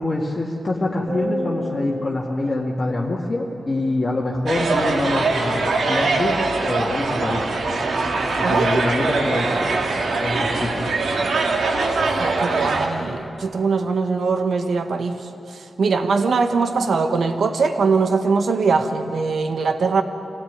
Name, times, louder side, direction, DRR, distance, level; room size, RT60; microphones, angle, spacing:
voice 1, 0.0-7.5 8.4-9.7 10.2-11.0, left 2 dB, 30° left, -4 dB, 2.0 m, -25 dB
sound 1, 1.1-3.6, equal, 45° right, 3.9 m, -32 dB
sound 2, 4.5-12.9, right 3 dB, 90° right, 2.5 m, -22 dB
voice 2, 8.4-8.8 12.0-15.2 15.8-20.0, right 4 dB, 75° right, 6 dB, 1.6 m, -21 dB
25.5 x 17.5 x 9.6 m, 2.8 s
wide cardioid pair, 170°, 0 cm